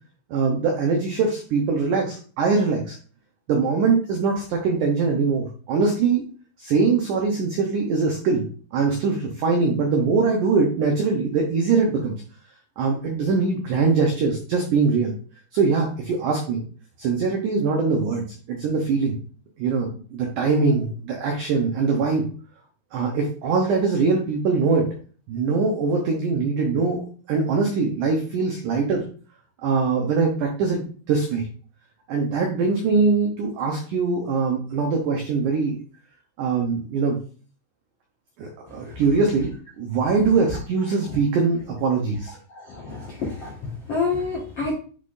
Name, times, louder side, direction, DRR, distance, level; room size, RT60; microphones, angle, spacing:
voice 1, 0.3-3.0 3.5-6.2 6.6-8.5 8.7-12.2 12.8-15.1 15.5-16.6 17.0-19.2 19.6-22.3 22.9-24.9 25.3-27.0 27.3-29.0 29.6-31.5 32.1-35.8 36.4-37.2 38.4-39.5 39.8-42.4, right 4 dB, 80° right, 1 dB, 1.8 m, -22 dB
voice 2, 38.7-39.0 42.5-44.7, left 4 dB, 60° left, -6 dB, 1.6 m, -29 dB
10.0 x 3.8 x 2.5 m, 0.41 s
omnidirectional pair, 4.8 m